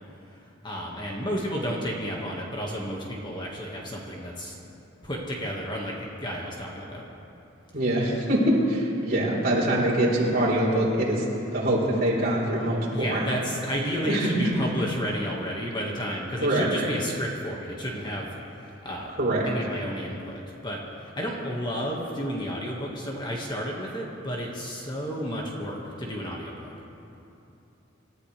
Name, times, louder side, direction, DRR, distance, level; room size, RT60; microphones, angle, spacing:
voice 1, 0.6-4.6 5.0-7.0 12.9-19.1 19.4-26.7, equal, 25° left, -2 dB, 1.7 m, -32 dB
voice 2, 7.7-8.4 8.7-11.2 11.5-13.3 14.1-14.5 16.4-16.7 19.2-19.5, right 1 dB, 50° right, -5 dB, 4.0 m, -24 dB
26.5 x 13.5 x 3.4 m, 2.9 s
head